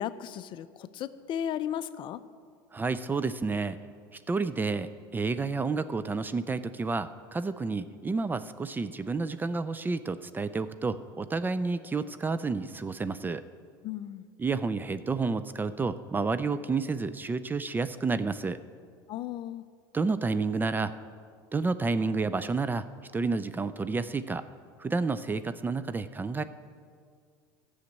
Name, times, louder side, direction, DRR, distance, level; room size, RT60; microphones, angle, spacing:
voice 1, 0.0-2.2 13.8-14.2 19.1-19.6, left 10 dB, 45° left, 14 dB, 0.5 m, -35 dB
voice 2, 2.7-3.8 4.3-13.4 14.4-18.6 19.9-20.9 21.5-22.8 23.1-24.4 24.8-26.4, right 4 dB, 15° right, 13 dB, 0.4 m, -30 dB
12.0 x 6.4 x 8.0 m, 2.1 s
supercardioid pair, 100°, 12 cm